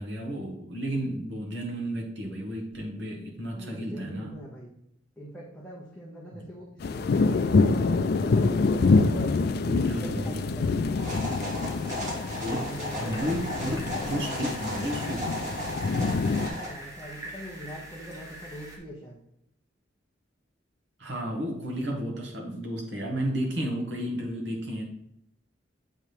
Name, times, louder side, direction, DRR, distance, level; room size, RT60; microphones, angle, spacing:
voice 1, 0.0-4.3 6.3-6.4 9.6-10.5 12.4-12.6 13.0-15.5 21.0-24.8, equal, 65° right, 0 dB, 1.5 m, -32 dB
voice 2, 3.5-4.8 5.2-7.7 7.9-11.0 12.6-13.4 13.7-14.5 16.0-19.2, equal, 5° left, -6 dB, 0.9 m, -42 dB
sound 1, 6.8-16.5, left 3 dB, 55° left, 0.4 m, -26 dB
sound 2, 11.0-16.7, equal, 40° right, 2.0 m, -35 dB
sound 3, 11.5-18.8, right 1 dB, 15° right, 1.2 m, -45 dB
7.1 x 3.4 x 4.6 m, 0.76 s
head